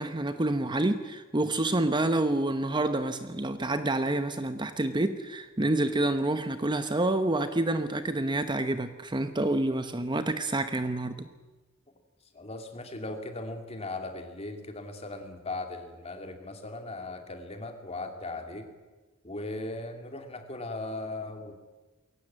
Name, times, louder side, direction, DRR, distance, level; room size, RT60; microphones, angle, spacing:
voice 1, 0.0-11.3, right 2 dB, 25° right, 10 dB, 0.9 m, -28 dB
voice 2, 12.3-18.6 19.2-21.5, left 2 dB, 30° left, 5 dB, 2.7 m, -38 dB
22.0 x 17.5 x 8.8 m, 1.3 s
head